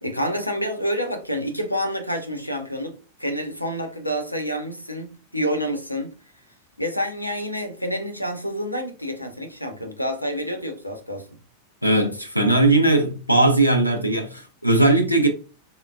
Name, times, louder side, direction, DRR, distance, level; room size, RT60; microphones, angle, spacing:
voice 1, 0.0-2.9 3.2-6.1 6.8-11.3, equal, 90° left, 0.6 m, -28 dB
voice 2, 11.8-15.3, right 2 dB, 90° right, 0.4 m, -19 dB
3.5 x 2.3 x 2.2 m
figure-of-eight pair, 90°, 0 cm